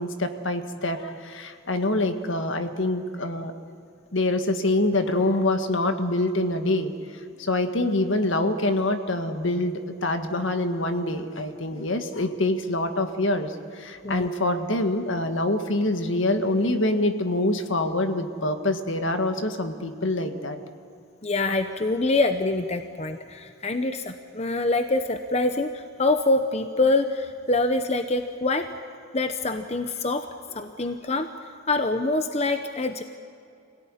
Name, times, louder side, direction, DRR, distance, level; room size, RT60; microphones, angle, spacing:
voice 1, 0.0-3.5 4.1-6.9 7.4-20.6, left 2 dB, 70° left, 7 dB, 1.8 m, -25 dB
voice 2, 21.2-28.7 29.1-30.3 30.5-31.3 31.7-33.0, left 2 dB, 30° left, 8 dB, 0.9 m, -25 dB
26.0 x 17.5 x 10.0 m, 2.5 s
head